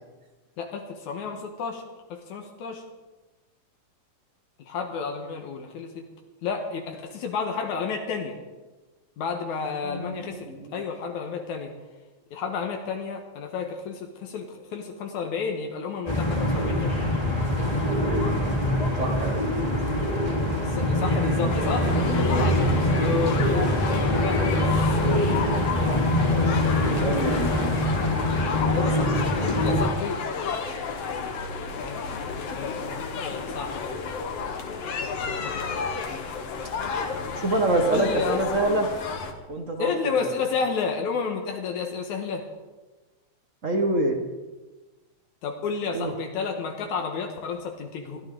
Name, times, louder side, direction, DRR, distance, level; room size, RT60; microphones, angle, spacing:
voice 1, 0.6-1.8 2.1-2.8 4.6-6.0 6.4-8.4 9.2-11.7 12.3-17.1 19.8-19.9 20.6-26.8 27.1-27.6 28.7-30.2 31.0-31.4 31.7-33.9 34.9-36.0 37.9-38.4 39.8-42.4 45.4-48.2, left 5 dB, 80° left, 3 dB, 2.7 m, -32 dB
voice 2, 9.8-10.8 18.9-19.4 22.1-22.7 26.8-27.7 37.4-38.9 39.5-40.4 43.6-44.2 45.9-46.1, right 2 dB, 45° right, 4 dB, 1.0 m, -27 dB
sound 1, 16.1-29.9, left 1 dB, 15° left, 2.8 m, -24 dB
sound 2, 21.5-39.3, left 5 dB, 60° left, 2.3 m, -32 dB
22.5 x 14.0 x 3.9 m, 1.2 s
omnidirectional pair, 3.4 m